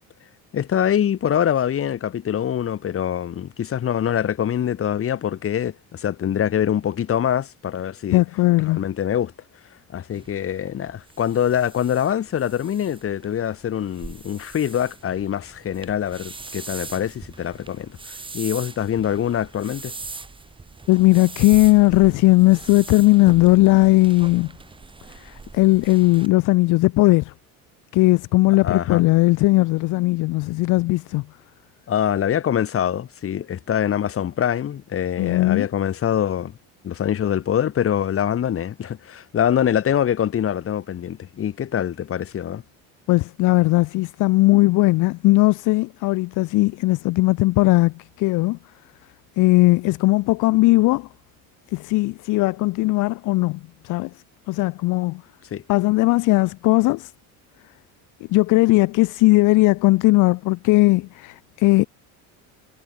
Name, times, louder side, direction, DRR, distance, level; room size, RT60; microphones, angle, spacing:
voice 1, 0.5-8.2 8.7-9.3 9.9-19.9 28.6-29.0 31.9-36.6 36.8-42.6 55.5-55.6, left 9 dB, 40° left, 4.5 m, -24 dB
voice 2, 8.1-8.8 20.9-24.5 25.2-27.3 27.9-31.3 35.2-35.7 43.1-48.6 49.4-51.1 51.7-54.1 54.5-55.2 55.7-57.1 58.3-61.8, left 20 dB, 60° left, 0.7 m, -18 dB
sound 1, 10.1-26.3, right 3 dB, 15° right, 2.6 m, -40 dB
cardioid pair, 135°, 34 cm